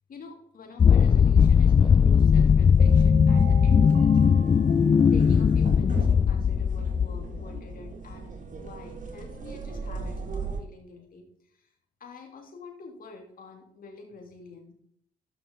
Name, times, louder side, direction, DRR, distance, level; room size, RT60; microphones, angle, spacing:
voice 1, 0.1-4.4 4.8-8.3 8.6-11.7 12.0-14.7, left 4 dB, 55° left, 3 dB, 2.7 m, -47 dB
sound 1, 0.8-7.6, left 6 dB, 25° left, 0.3 m, -19 dB
sound 2, 2.7-10.6, right 4 dB, 45° right, 2.1 m, -38 dB
13.0 x 5.9 x 3.9 m, 0.64 s
hypercardioid pair, 45°, 18 cm